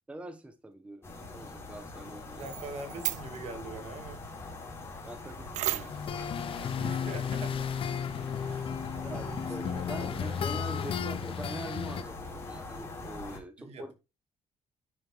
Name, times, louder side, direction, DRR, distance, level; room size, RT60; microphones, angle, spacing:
voice 1, 0.1-2.5 5.1-6.2 8.1-8.3 9.0-13.9, right 1 dB, 10° right, 1.2 m, -44 dB
sound 1, 1.0-13.4, left 3 dB, 20° left, 3.7 m, -42 dB
voice 2, 2.4-4.2 6.6-7.6 8.4-10.5 13.6-13.9, right 3 dB, 60° right, 2.5 m, -44 dB
sound 2, 2.4-3.4 5.5-6.1, right 15 dB, 80° right, 0.5 m, -34 dB
sound 3, 5.9-12.0, left 8 dB, 45° left, 0.8 m, -34 dB
9.9 x 6.7 x 4.6 m
cardioid pair, 150°, 12 cm